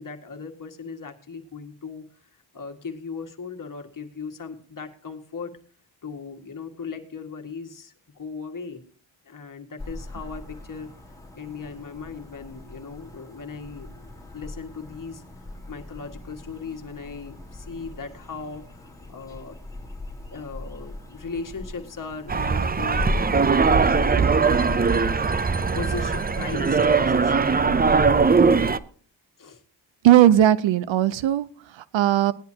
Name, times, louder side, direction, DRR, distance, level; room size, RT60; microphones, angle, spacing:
voice 1, 0.0-5.5 6.0-8.9 9.2-19.6 20.3-23.5 24.0-25.3 25.7-28.1 29.4-29.6, left 5 dB, 45° left, 4 dB, 1.9 m, -38 dB
sound 1, 9.8-27.3, left 2 dB, 5° left, 3.8 m, -38 dB
sound 2, 22.3-28.8, right 5 dB, 20° right, 0.5 m, -20 dB
voice 2, 30.0-31.5 31.7-32.3, right 12 dB, 85° right, 17 dB, 0.7 m, -18 dB
19.0 x 10.5 x 2.8 m, 0.43 s
cardioid pair, 80°, 45 cm